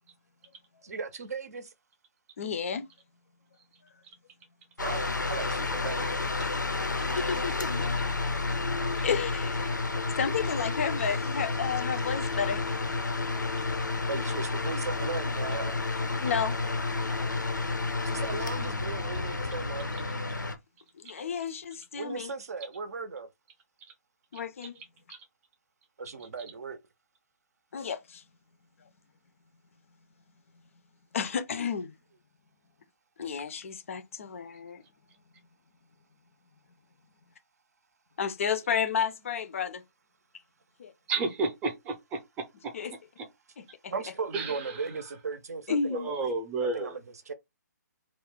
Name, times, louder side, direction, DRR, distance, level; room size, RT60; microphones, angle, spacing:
voice 1, 0.8-1.7 4.8-6.1 14.1-16.1 17.0-17.1 18.0-19.9 21.9-23.3 26.0-26.8 43.9-46.3 46.6-47.3, right 4 dB, 60° right, 0.6 m, -37 dB
voice 2, 2.4-2.8 7.1-7.9 9.0-9.7 10.2-12.6 16.2-16.5 21.0-22.3 24.3-24.8 27.7-28.2 31.1-31.9 33.2-34.8 38.2-39.8 40.8-40.9 42.7-42.9 43.6-43.9 45.7-46.1, left 6 dB, 45° left, 0.4 m, -31 dB
sound 1, 4.8-20.6, left 3 dB, 90° left, 0.6 m, -30 dB
voice 3, 41.1-42.2 44.3-44.8 45.9-47.0, right 3 dB, 15° right, 0.5 m, -31 dB
2.4 x 2.1 x 3.5 m
figure-of-eight pair, 140°, 10 cm